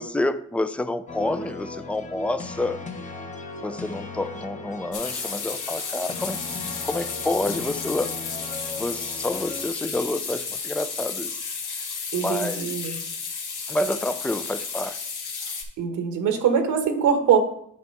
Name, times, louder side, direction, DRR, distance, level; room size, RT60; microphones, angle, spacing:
voice 1, 0.0-2.8 3.6-8.1 8.8-11.4 11.8-11.9 12.2-13.0 13.7-15.1, left 2 dB, 5° left, 12 dB, 0.4 m, -29 dB
sound 1, 1.1-9.7, left 3 dB, 25° left, 1.0 m, -38 dB
sound 2, 4.9-15.6, left 5 dB, 80° left, 1.5 m, -32 dB
voice 2, 12.1-12.9 15.8-17.4, right 7 dB, 85° right, 5 dB, 1.3 m, -22 dB
9.0 x 3.3 x 5.3 m, 0.70 s
cardioid pair, 90°, 30 cm